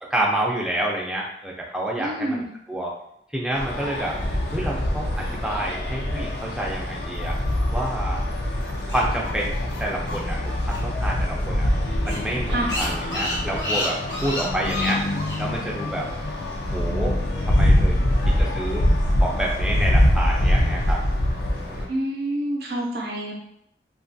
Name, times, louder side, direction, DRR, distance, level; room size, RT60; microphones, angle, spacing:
voice 1, 0.0-2.9 3.3-4.2 4.5-7.4 7.7-8.2 8.9-11.7 12.0-15.0 15.4-16.1 16.7-17.2 17.5-18.8 19.2-21.0 21.6-21.9, right 1 dB, 5° right, -3 dB, 0.4 m, -28 dB
voice 2, 2.0-2.5 12.5-12.8 21.9-23.3, right 1 dB, 60° right, -2 dB, 0.5 m, -27 dB
sound 1, 3.5-21.9, left 1 dB, 60° left, 0.5 m, -24 dB
sound 2, 8.6-11.1 11.3-11.4 11.7-11.8 12.0-15.4, left 1 dB, 85° left, 0.9 m, -30 dB
2.7 x 2.3 x 2.6 m, 0.75 s
head